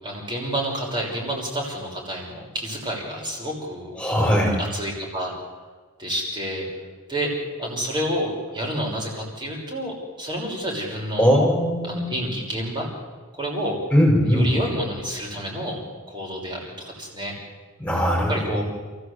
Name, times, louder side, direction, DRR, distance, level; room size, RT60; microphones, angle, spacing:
voice 1, 0.0-5.3 6.0-6.7 7.1-7.3 7.6-11.3 11.8-12.9 13.3-13.8 14.3-17.3 18.3-18.6, equal, 20° right, -1 dB, 5.9 m, -29 dB
voice 2, 4.0-4.6 11.2-12.1 13.9-14.5 17.8-18.6, equal, 5° left, -2 dB, 5.5 m, -20 dB
29.5 x 16.0 x 8.2 m, 1.4 s
head